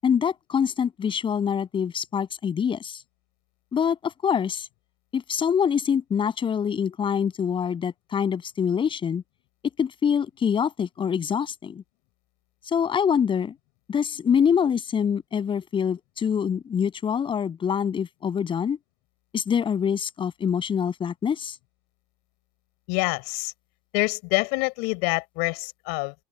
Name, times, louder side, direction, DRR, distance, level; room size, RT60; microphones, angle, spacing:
voice 1, 0.0-3.0 3.7-4.7 5.1-9.2 9.8-11.8 12.6-13.5 13.9-18.8 19.3-21.5, left 7 dB, 30° left, 7.9 m, -25 dB
voice 2, 22.9-23.5 23.9-26.1, left 30 dB, 70° left, 5.7 m, -26 dB
open air
supercardioid pair, 130°, 18 cm